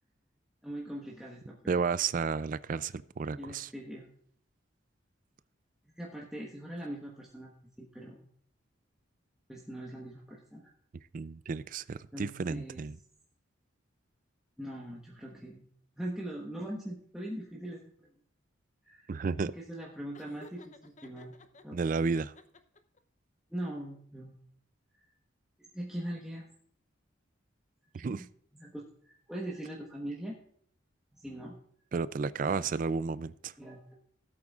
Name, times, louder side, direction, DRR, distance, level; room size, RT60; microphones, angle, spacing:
voice 1, 0.6-1.8 3.4-4.1 5.9-7.5 7.8-8.3 9.5-10.7 12.1-12.8 14.6-15.7 16.0-17.8 18.8-19.1 19.4-21.8 23.5-24.4 24.9-25.0 25.6-26.5 27.9-28.2 28.6-30.4 31.1-31.5 32.4-32.7 33.6-33.9, right 1 dB, 5° right, 1.2 m, -41 dB
voice 2, 1.7-3.7 11.1-13.0 19.1-19.5 21.7-22.3 27.9-28.2 31.9-33.5, right 5 dB, 45° right, 0.3 m, -32 dB
Laughter, 20.1-21.6 22.1-23.0, left 2 dB, 35° left, 0.7 m, -54 dB
16.5 x 8.5 x 2.4 m
head